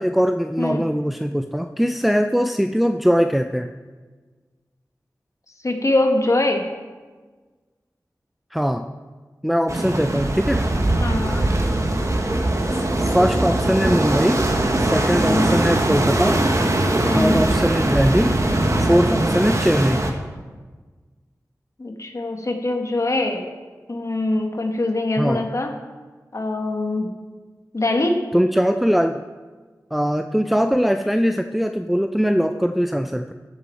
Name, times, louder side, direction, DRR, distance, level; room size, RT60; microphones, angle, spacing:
voice 1, 0.0-3.7 8.5-8.9 9.4-10.6 12.7-14.4 14.8-16.4 17.1-18.3 18.8-20.0 25.2-25.4 28.3-29.2 29.9-33.3, equal, ahead, 7 dB, 0.5 m, -21 dB
voice 2, 5.6-6.6 11.0-11.5 15.2-15.6 17.0-17.4 21.8-23.5 23.9-25.7 26.3-27.1 27.7-28.2, left 2 dB, 50° left, 3 dB, 1.7 m, -23 dB
sound 1, 9.7-20.1, right 1 dB, 50° right, 1.5 m, -21 dB
15.0 x 7.3 x 4.6 m, 1.4 s
cardioid pair, 40°, 7 cm